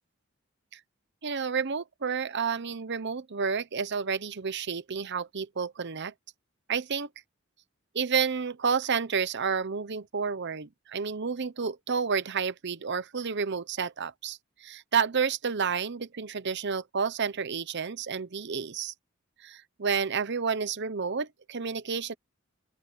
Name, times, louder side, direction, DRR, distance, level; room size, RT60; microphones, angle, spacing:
voice 1, 1.2-6.1 6.7-7.1 7.9-18.9 19.4-22.1, right 6 dB, 55° right, 0.9 m, -30 dB
open air
head